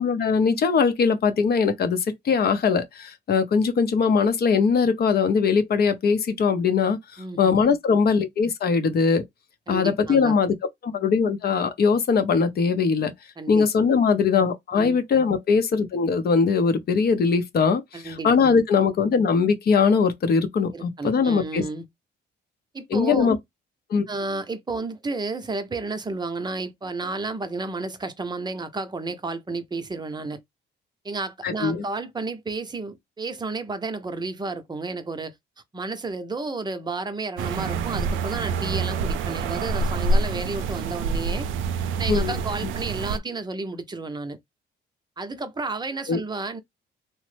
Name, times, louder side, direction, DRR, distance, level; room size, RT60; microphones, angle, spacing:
voice 1, 0.0-7.0 7.4-9.2 9.7-10.5 10.8-13.1 13.5-21.6 22.9-23.4 23.9-24.1 31.4-31.8 42.1-42.3 46.1-46.2, left 5 dB, 50° left, 0.6 m, -21 dB
voice 2, 7.2-7.6 9.7-10.4 13.4-13.7 14.7-15.0 17.9-18.3 20.7-21.8 22.7-23.4 24.1-30.4 31.0-35.3 35.7-41.5 42.0-44.4 45.2-46.6, right 3 dB, 20° right, 0.6 m, -32 dB
sound 1, 37.4-43.2, right 3 dB, 80° right, 0.4 m, -26 dB
3.0 x 2.0 x 3.2 m
cardioid pair, 90°, 20 cm